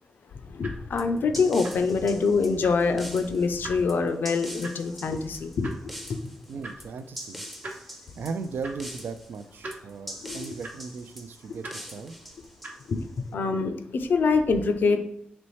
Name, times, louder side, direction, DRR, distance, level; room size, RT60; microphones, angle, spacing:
voice 1, 0.5-5.7 10.2-10.5 12.9-13.0 13.3-15.0, left 4 dB, 75° left, 7 dB, 0.4 m, -25 dB
sound 1, 0.6-13.2, right 2 dB, 60° right, 0.8 m, -46 dB
sound 2, 1.0-13.2, equal, ahead, 0.5 m, -43 dB
voice 2, 6.5-7.4 7.7-12.1, right 5 dB, 75° right, 10 dB, 0.3 m, -37 dB
4.1 x 3.1 x 3.1 m, 0.75 s
cardioid pair, 75°, 3 cm